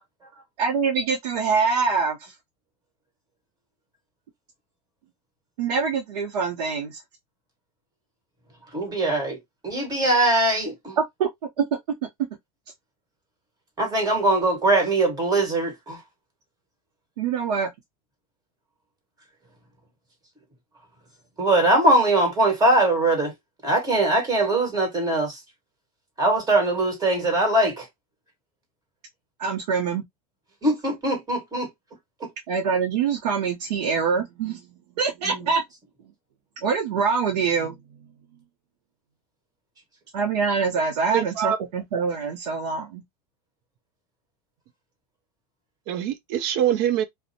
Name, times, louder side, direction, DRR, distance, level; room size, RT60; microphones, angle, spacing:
voice 1, 0.6-2.3 5.6-7.0 11.0-11.3 11.6-11.7 17.2-17.7 29.4-30.0 32.5-34.6 35.0-35.6 36.6-37.8 40.1-43.0, right 5 dB, 90° right, 0.7 m, -24 dB
voice 2, 8.7-9.4 9.6-11.0 13.8-16.0 21.4-23.3 23.6-25.4 26.2-27.9 30.6-31.7 32.2-32.3 35.2-35.5, right 2 dB, 20° right, 1.4 m, -21 dB
voice 3, 41.1-41.6 45.9-47.0, right 10 dB, 50° right, 0.5 m, -24 dB
2.5 x 2.1 x 2.7 m
supercardioid pair, 125°, 20 cm